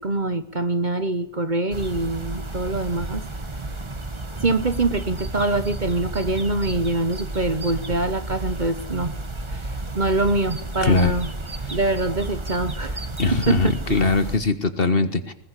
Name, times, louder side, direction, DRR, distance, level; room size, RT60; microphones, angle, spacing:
voice 1, 0.0-3.2 4.4-9.2 9.5-11.3 11.7-13.0 13.3-14.1, right 2 dB, 40° right, 12 dB, 1.2 m, -24 dB
sound 1, 1.7-14.4, right 2 dB, 20° right, 1.5 m, -32 dB
voice 2, 10.8-11.1 13.2-15.3, left 3 dB, 45° left, 11 dB, 1.7 m, -21 dB
21.0 x 20.5 x 8.4 m, 0.67 s
omnidirectional pair, 1.4 m